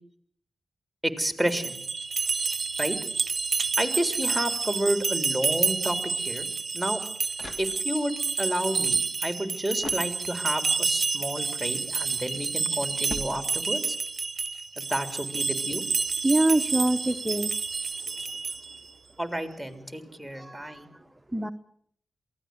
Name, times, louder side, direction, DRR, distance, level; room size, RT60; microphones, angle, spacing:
voice 1, 1.0-1.8 2.8-3.0 3.8-6.5 6.7-7.0 7.6-14.0 14.8-15.8 19.2-20.9, right 1 dB, ahead, 8 dB, 3.7 m, -30 dB
sound 1, 1.4-18.8, right 4 dB, 55° right, 0.8 m, -29 dB
sound 2, 7.3-8.2 9.8-10.7 13.1-14.0, left 1 dB, 45° left, 2.9 m, -41 dB
voice 2, 16.2-17.5 20.3-20.8 21.3-21.5, right 2 dB, 15° right, 9 dB, 0.9 m, -25 dB
23.0 x 16.0 x 8.0 m, 0.66 s
supercardioid pair, 45°, 0 cm